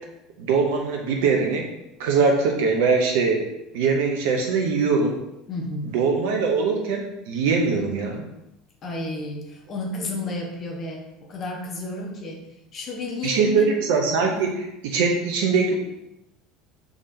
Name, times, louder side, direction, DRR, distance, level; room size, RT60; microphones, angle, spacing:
voice 1, 0.4-1.6 2.0-3.5 3.7-5.1 5.9-8.2 13.2-14.5 14.8-15.7, right 4 dB, 60° right, 2 dB, 0.6 m, -22 dB
voice 2, 5.5-6.0 8.8-12.4 12.7-13.7 14.3-14.5, left 2 dB, 40° left, 0 dB, 1.0 m, -32 dB
4.9 x 3.4 x 2.7 m, 0.88 s
figure-of-eight pair, 65°, 0 cm